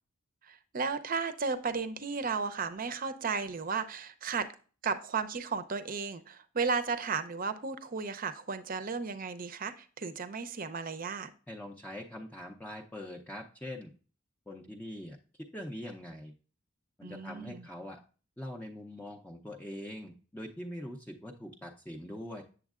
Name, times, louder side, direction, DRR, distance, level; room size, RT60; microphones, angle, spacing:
voice 1, 0.4-4.5 4.8-11.3 17.0-17.7, right 5 dB, 40° right, 11 dB, 0.6 m, -34 dB
voice 2, 11.5-13.9 14.5-15.2 15.5-16.3 17.0-18.0 18.4-22.4, left 1 dB, 10° left, 0 dB, 0.5 m, -43 dB
8.2 x 7.1 x 2.4 m, 0.38 s
head